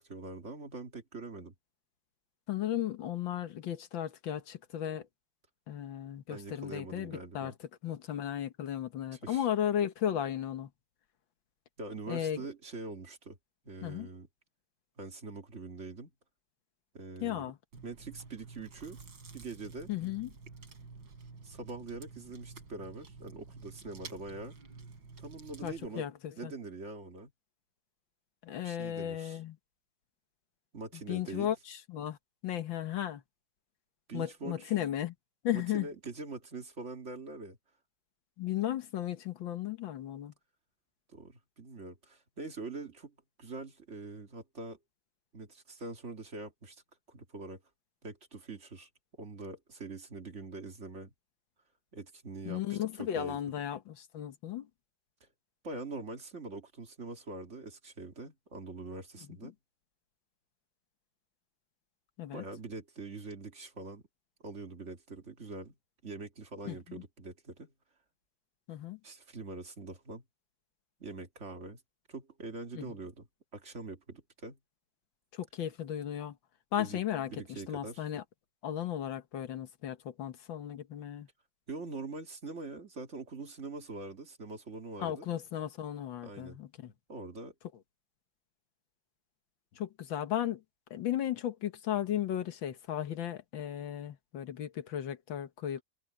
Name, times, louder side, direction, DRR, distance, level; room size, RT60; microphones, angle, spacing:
voice 1, 0.0-1.5 6.3-7.6 9.1-9.5 11.8-13.4 13.7-14.3 15.0-16.1 16.9-17.5 17.8-19.0 19.3-19.9 21.4-24.6 25.2-26.1 26.4-27.3 28.6-29.4 30.7-31.5 34.1-34.7 35.5-37.6 41.1-44.8 45.3-46.8 47.1-47.6 48.0-48.9 49.2-51.1 51.9-53.4 55.2-55.3 55.6-59.6 62.3-64.0 64.4-65.7 66.0-67.7 69.0-70.2 71.0-71.8 72.1-73.3 73.5-74.6 76.8-77.0 77.3-78.1 81.7-85.3 86.2-86.6 87.1-87.5, right 3 dB, 40° right, 2.4 m, -44 dB
voice 2, 2.5-5.1 5.7-7.5 7.8-10.7 12.1-12.4 13.8-14.1 17.2-17.6 19.9-20.3 25.6-26.5 28.4-29.6 31.1-32.2 32.4-33.2 34.1-35.1 35.4-35.9 38.4-40.3 52.5-54.7 59.4-59.5 62.2-62.4 66.7-67.0 68.7-69.0 72.7-72.9 75.3-76.4 76.7-77.3 77.7-78.2 78.6-81.3 85.0-86.9 89.8-90.6 90.9-95.8, left 11 dB, 85° left, 2.0 m, -35 dB
Chewing mastication, 17.7-25.9, right 4 dB, 80° right, 3.9 m, -50 dB
omnidirectional pair, 2.0 m